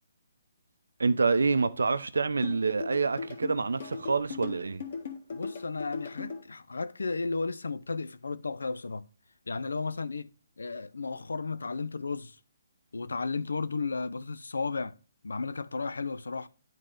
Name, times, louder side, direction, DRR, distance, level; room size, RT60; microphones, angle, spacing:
voice 1, 1.0-4.8, right 4 dB, 85° right, 0.6 m, -27 dB
sound 1, 2.4-6.4, left 5 dB, 55° left, 1.9 m, -38 dB
voice 2, 5.3-9.0 9.5-10.3 10.6-12.4 12.9-14.9 15.2-16.5, left 4 dB, 90° left, 0.5 m, -34 dB
10.0 x 3.7 x 3.8 m
hypercardioid pair, 150°, 0 cm